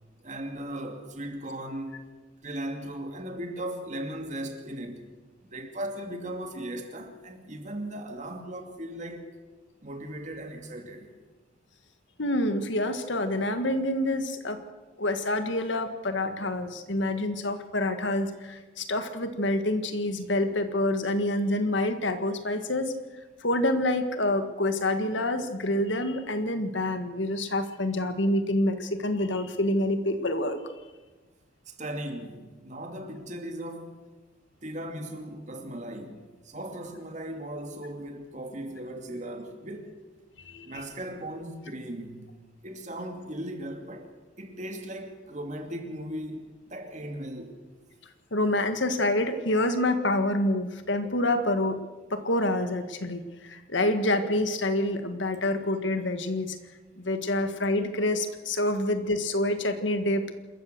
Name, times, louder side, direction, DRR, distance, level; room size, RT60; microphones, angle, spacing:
voice 1, 0.2-2.0 2.4-5.1 5.4-9.3 9.8-11.1 31.7-34.0 34.6-40.0 40.7-42.3 42.6-47.6, right 1 dB, 40° right, 2.5 m, -37 dB
voice 2, 12.2-14.6 15.0-22.9 23.4-30.6 40.4-40.8 48.3-51.8 52.1-56.6 57.0-60.2, left 1 dB, 75° left, 1.8 m, -27 dB
27.0 x 14.5 x 6.8 m
head